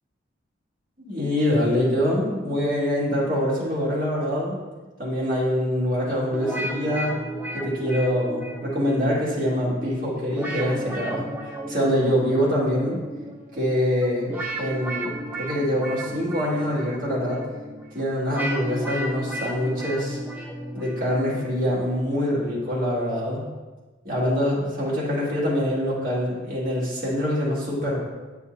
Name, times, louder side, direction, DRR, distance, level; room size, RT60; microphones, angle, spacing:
voice 1, 1.0-4.6 5.0-7.2 7.5-11.2 11.7-13.0 13.5-15.1 15.4-17.4 17.9-20.2 20.7-23.4 24.0-28.1, equal, 45° right, -7 dB, 2.4 m, -24 dB
sound 1, 6.3-22.3, right 1 dB, 10° right, 0.7 m, -34 dB
9.5 x 5.7 x 2.8 m, 1.3 s
head